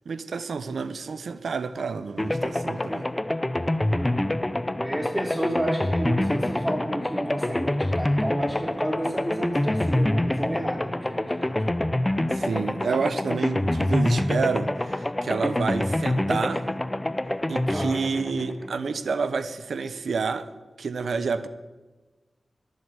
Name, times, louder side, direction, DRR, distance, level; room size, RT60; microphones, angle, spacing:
voice 1, 0.1-3.1 12.3-16.6 17.5-20.5 20.8-21.5, right 5 dB, 85° right, 12 dB, 0.9 m, -29 dB
sound 1, 2.2-19.1, left 1 dB, 20° left, 0.6 m, -26 dB
voice 2, 3.9-4.2 4.8-11.5 17.7-18.0, right 1 dB, 15° right, 1 dB, 3.1 m, -31 dB
12.5 x 11.0 x 8.0 m, 1.2 s
cardioid pair, 50°, 0 cm